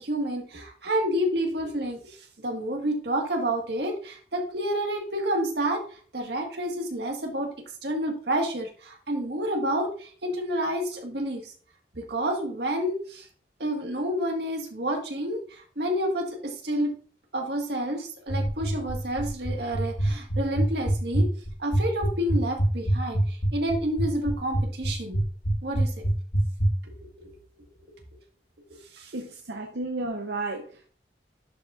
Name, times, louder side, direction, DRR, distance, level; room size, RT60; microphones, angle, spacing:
voice 1, 0.0-2.2 2.4-5.8 6.1-7.5 7.8-11.5 11.9-13.3 13.6-16.9 17.3-21.3 21.6-25.2 25.6-25.9 27.0-27.3 28.9-29.1, right 1 dB, 70° right, 1.7 m, -29 dB
sound 1, 18.3-26.7, right 1 dB, 60° left, 1.3 m, -24 dB
voice 2, 29.1-30.9, right 2 dB, 85° right, 0.8 m, -33 dB
11.0 x 5.0 x 2.5 m
head